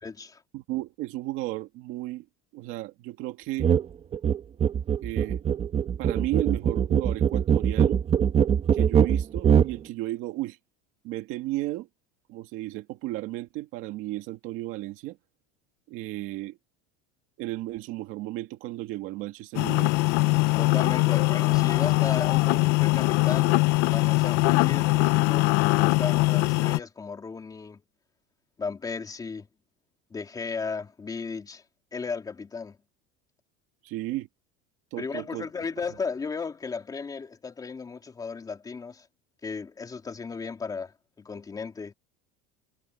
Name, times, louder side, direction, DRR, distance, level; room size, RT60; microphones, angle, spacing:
voice 1, 0.0-0.4 20.6-23.6 23.9-27.8 28.6-29.5 30.1-31.6 31.9-32.8 35.0-39.1 39.4-40.9 41.2-41.9, left 5 dB, 15° left, 3.4 m, -35 dB
voice 2, 0.5-2.3 2.5-3.7 5.0-5.4 6.0-8.0 8.7-10.6 11.0-11.9 12.3-15.2 15.9-16.6 17.4-19.9 33.8-34.3 34.9-35.5, right 17 dB, 45° right, 2.1 m, -34 dB
sound 1, 3.6-3.9 4.1-9.7, right 8 dB, 20° right, 1.5 m, -22 dB
sound 2, 19.5-26.8, left 23 dB, 50° left, 0.5 m, -22 dB
cardioid pair, 180°, 29 cm